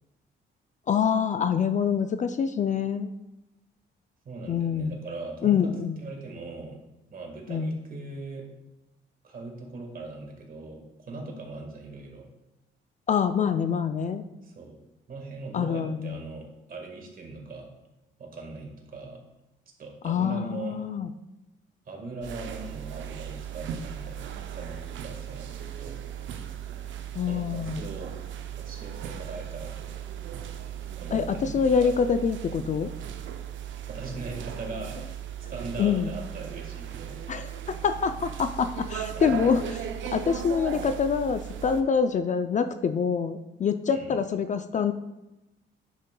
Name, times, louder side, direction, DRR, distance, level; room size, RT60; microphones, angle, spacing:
voice 1, 0.9-3.1 4.5-4.9 5.4-6.0 7.5-7.7 13.1-14.2 15.5-16.2 20.0-21.1 27.1-27.8 31.1-32.9 35.8-36.1 37.3-39.6 40.1-44.9, left 6 dB, 40° left, 10 dB, 0.4 m, -25 dB
voice 2, 4.2-5.7 6.0-6.8 7.1-8.5 9.2-12.3 14.4-14.8 15.1-17.7 18.2-19.2 19.8-20.8 21.9-26.0 27.3-28.1 28.5-30.1 31.0-31.9 33.9-35.0 35.5-37.2 39.1-39.5 43.9-44.2, right 3 dB, 45° right, 2 dB, 1.6 m, -40 dB
sound 1, 22.2-41.8, right 9 dB, 75° right, 0.6 m, -37 dB
10.5 x 5.3 x 2.2 m, 0.97 s
cardioid pair, 90°, 20 cm